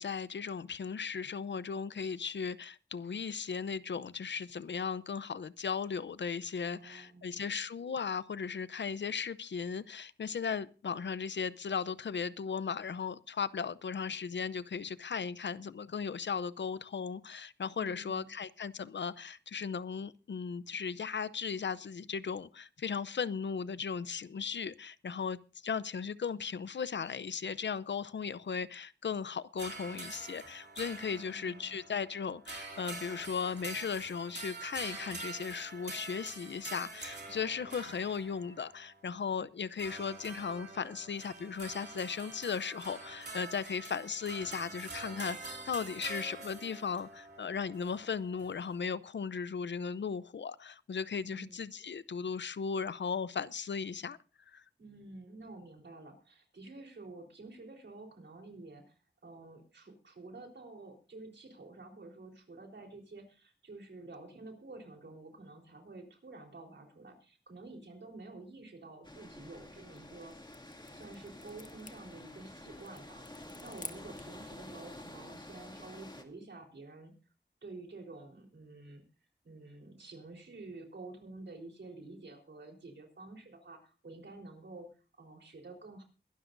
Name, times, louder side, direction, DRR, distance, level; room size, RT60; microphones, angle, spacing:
voice 1, 0.0-54.2 54.5-54.6, left 6 dB, 85° left, 0.6 m, -37 dB
voice 2, 6.6-7.5 17.8-18.3 31.1-31.7 51.1-51.6 54.8-70.4 70.9-77.1 77.6-79.0 79.4-84.9 85.2-86.0, right 2 dB, 90° right, 3.9 m, -50 dB
sound 1, 29.6-39.0 39.8-48.8, right 3 dB, 65° right, 2.9 m, -46 dB
sound 2, 69.0-76.2, left 1 dB, 25° left, 2.4 m, -50 dB
sound 3, 69.9-74.4, left 3 dB, 45° left, 1.3 m, -51 dB
22.0 x 12.0 x 2.6 m
wide cardioid pair, 65°, 18 cm